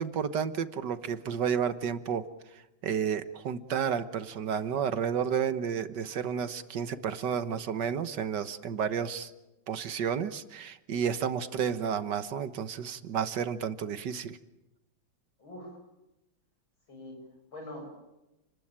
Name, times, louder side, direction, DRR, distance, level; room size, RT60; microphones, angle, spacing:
voice 1, 0.0-2.2 2.8-9.3 9.7-14.4, right 7 dB, 65° right, 12 dB, 1.7 m, -31 dB
voice 2, 15.4-15.8 16.9-17.9, left 1 dB, 85° left, 2 dB, 8.5 m, -44 dB
29.5 x 19.5 x 8.9 m, 0.97 s
omnidirectional pair, 2.1 m